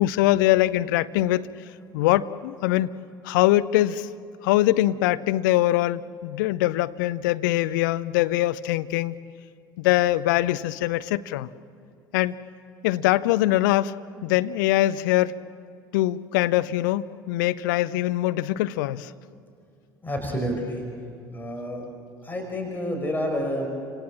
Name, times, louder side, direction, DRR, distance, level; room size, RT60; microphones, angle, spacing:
voice 1, 0.0-1.4 1.9-2.9 3.2-4.1 4.4-9.1 9.8-11.5 12.1-12.3 12.8-14.0 14.2-15.3 15.9-19.1, left 15 dB, 65° left, 14 dB, 0.7 m, -22 dB
voice 2, 20.0-20.8 21.3-21.8 22.2-23.7, equal, 15° left, 2 dB, 5.7 m, -29 dB
30.0 x 27.0 x 7.4 m, 2.4 s
figure-of-eight pair, 60°, 11 cm